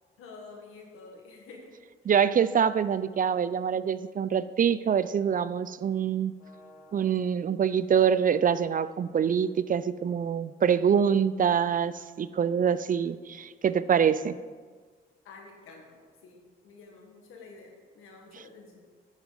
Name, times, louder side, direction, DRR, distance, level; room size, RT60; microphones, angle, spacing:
voice 1, 0.2-1.7 6.4-7.1 15.2-18.8, left 3 dB, 85° left, 2 dB, 1.5 m, -49 dB
voice 2, 2.1-6.3 6.9-14.4, right 7 dB, 40° right, 15 dB, 0.4 m, -25 dB
9.7 x 7.4 x 3.9 m, 1.5 s
supercardioid pair, 60°, 21 cm